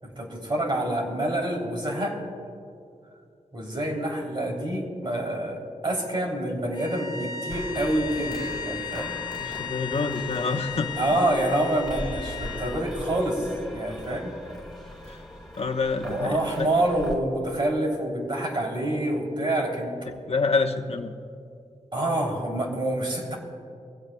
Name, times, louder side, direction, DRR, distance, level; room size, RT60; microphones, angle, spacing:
voice 1, 0.0-2.2 3.5-9.2 11.0-14.3 16.0-20.0 21.9-23.4, right 1 dB, 40° right, -1 dB, 3.2 m, -27 dB
sound 1, 6.7-12.8, left 8 dB, 35° left, 1.7 m, -36 dB
sound 2, 7.5-17.1, equal, 5° left, 4.2 m, -40 dB
voice 2, 9.3-11.0 15.1-15.2 15.6-16.5 20.3-21.1, left 4 dB, 50° left, 5 dB, 1.0 m, -27 dB
23.0 x 16.0 x 2.3 m, 2.5 s
wide cardioid pair, 80°, 13 cm